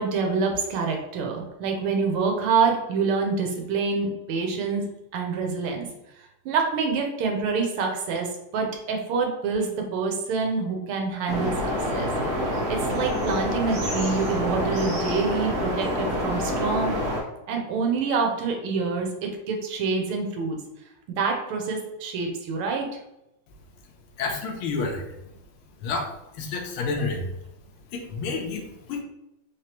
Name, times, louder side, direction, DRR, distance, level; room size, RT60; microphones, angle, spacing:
voice 1, 0.0-4.9 5.1-5.9 6.5-12.4 12.7-16.9 17.5-20.6 21.1-22.9, right 4 dB, 85° right, 2 dB, 1.7 m, -26 dB
sound 1, 11.3-17.2, equal, 35° right, 1.1 m, -27 dB
voice 2, 24.2-25.1 25.8-26.1 26.4-27.3 27.9-29.0, left 4 dB, 85° left, 3 dB, 1.6 m, -29 dB
4.3 x 3.3 x 2.9 m, 0.87 s
omnidirectional pair, 2.3 m